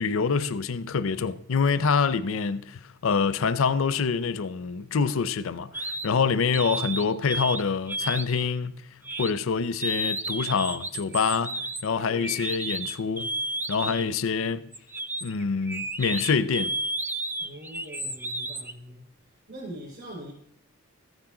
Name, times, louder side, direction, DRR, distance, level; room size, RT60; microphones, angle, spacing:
voice 1, 0.0-8.7 9.2-13.3 13.7-14.7 15.2-16.8, left 5 dB, 70° left, 0.5 m, -26 dB
sound 1, 5.7-6.1 6.5-7.6 7.9-8.4 9.0-9.3 9.8-14.1 14.7-18.7, right 2 dB, 10° right, 0.4 m, -32 dB
voice 2, 6.1-6.8 12.1-12.3 13.7-14.1 17.4-19.1 19.5-20.3, equal, 50° right, 4.4 m, -43 dB
14.0 x 8.9 x 3.8 m
head